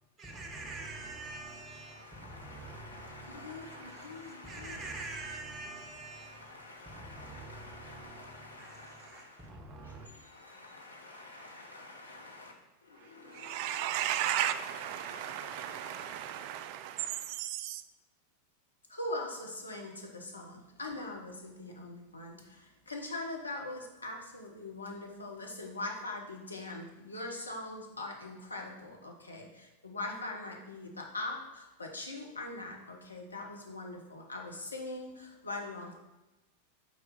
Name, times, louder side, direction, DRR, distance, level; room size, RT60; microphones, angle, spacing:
voice 1, 0.0-10.1, right 2 dB, 20° right, 1.0 m, -46 dB
voice 2, 1.9-4.9 6.1-9.5 9.8-12.5 12.8-14.4 14.9-16.8 18.9-36.0, left 2 dB, 80° left, 1.0 m, -43 dB
voice 3, 3.7-4.1 11.2-11.5 13.0-17.8, right 12 dB, 45° right, 0.4 m, -35 dB
6.3 x 4.3 x 4.2 m
figure-of-eight pair, 90°, 0 cm